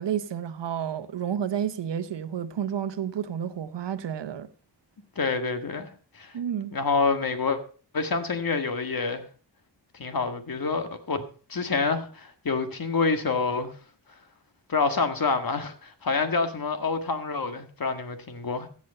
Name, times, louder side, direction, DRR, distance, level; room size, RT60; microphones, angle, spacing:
voice 1, 0.0-4.5 6.3-6.7, right 9 dB, 80° right, 1.0 m, -30 dB
voice 2, 5.2-5.9 6.1-6.3 6.7-7.6 7.9-9.2 9.9-11.2 11.5-13.7 14.7-18.7, left 4 dB, 55° left, 1.8 m, -27 dB
15.5 x 6.4 x 5.4 m
cardioid pair, 70°, 42 cm